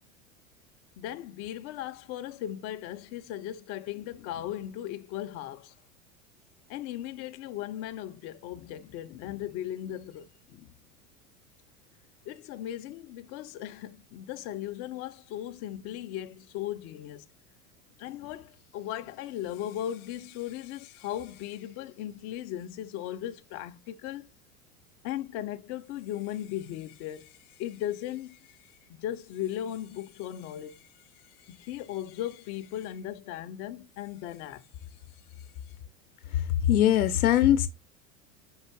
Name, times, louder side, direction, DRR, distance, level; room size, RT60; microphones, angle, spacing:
voice 1, 1.0-5.7 6.7-10.7 12.3-17.3 18.0-24.3 25.0-34.9 35.4-35.7, left 12 dB, 35° left, 0.4 m, -37 dB
voice 2, 36.7-37.7, left 12 dB, 80° left, 0.6 m, -21 dB
4.5 x 2.5 x 4.4 m
hypercardioid pair, 90°, 43 cm